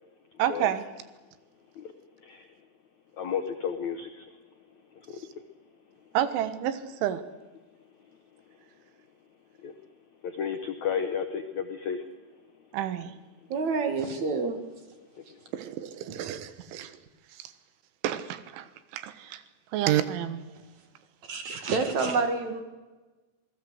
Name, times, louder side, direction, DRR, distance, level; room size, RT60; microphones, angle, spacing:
voice 1, 0.4-0.8 6.2-7.2 12.7-13.2 15.5-17.0 17.3-17.5 18.0-18.7 18.9-19.4 19.7-20.5, right 11 dB, 85° right, 12 dB, 3.8 m, -29 dB
voice 2, 3.2-4.3 5.1-5.2 9.6-9.7 10.2-12.0 15.2-15.4, left 7 dB, 80° left, 7 dB, 1.6 m, -32 dB
voice 3, 13.5-14.6 16.1-16.2 21.2-22.6, right 4 dB, 55° right, 7 dB, 2.3 m, -28 dB
27.0 x 19.0 x 8.1 m, 1.2 s
omnidirectional pair, 5.3 m